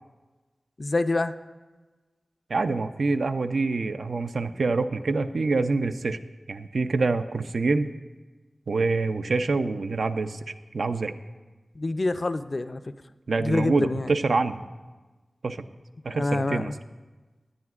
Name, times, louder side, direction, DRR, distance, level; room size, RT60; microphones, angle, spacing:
voice 1, 0.8-1.3 11.8-12.8 13.4-14.1 16.1-16.7, left 2 dB, 50° left, 10 dB, 0.4 m, -26 dB
voice 2, 2.5-6.2 6.5-7.9 8.7-10.4 10.7-11.1 13.3-14.6 15.4-15.6 16.0-16.7, right 3 dB, 85° right, 9 dB, 0.4 m, -26 dB
18.5 x 9.6 x 2.4 m, 1.2 s
wide cardioid pair, 65°, 0 cm